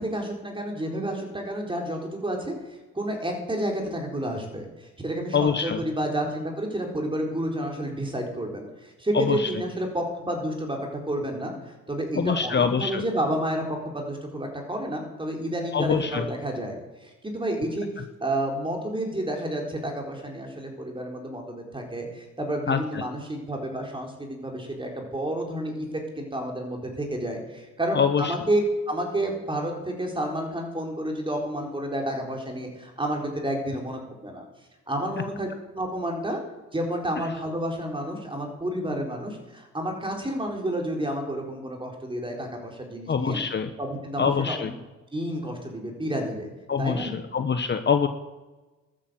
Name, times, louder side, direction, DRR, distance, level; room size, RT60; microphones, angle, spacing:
voice 1, 0.0-17.9 18.2-25.9 26.2-34.4 34.9-35.5 35.7-36.4 36.7-43.4 43.8-44.7 45.1-46.5 46.8-47.1, right 1 dB, 15° right, 1 dB, 4.3 m, -30 dB
voice 2, 5.3-5.8 9.1-9.5 12.2-13.0 15.7-16.2 22.7-23.0 27.9-28.2 43.1-43.7 44.2-44.7 46.7-48.1, left 6 dB, 35° left, 8 dB, 1.0 m, -24 dB
13.0 x 8.7 x 7.8 m, 1.1 s
cardioid pair, 90°, 30 cm